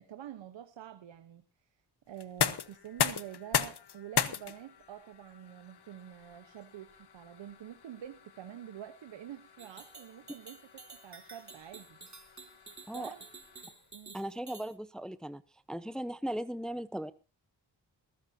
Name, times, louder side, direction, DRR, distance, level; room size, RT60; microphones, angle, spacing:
voice 1, 0.0-1.4 2.1-12.0 12.9-13.2 13.9-14.2, right 10 dB, 85° right, 10 dB, 1.1 m, -47 dB
sound 1, 2.1-13.9, left 8 dB, 65° left, 1.3 m, -38 dB
sound 2, 9.6-14.7, right 4 dB, 40° right, 3.3 m, -51 dB
voice 2, 14.1-15.4 15.7-17.1, right 1 dB, ahead, 13 dB, 0.9 m, -37 dB
21.5 x 14.5 x 2.8 m, 0.32 s
cardioid pair, 55°, 43 cm